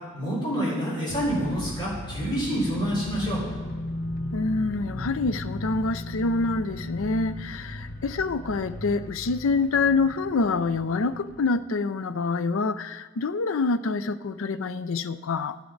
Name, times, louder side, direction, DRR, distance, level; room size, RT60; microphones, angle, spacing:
voice 1, 0.1-3.4, equal, 25° left, -6 dB, 4.6 m, -27 dB
sound 1, 1.1-11.5, left 1 dB, 45° left, 0.9 m, -36 dB
voice 2, 4.3-15.6, left 3 dB, 70° left, 13 dB, 0.5 m, -26 dB
13.5 x 11.5 x 3.9 m, 1.3 s
head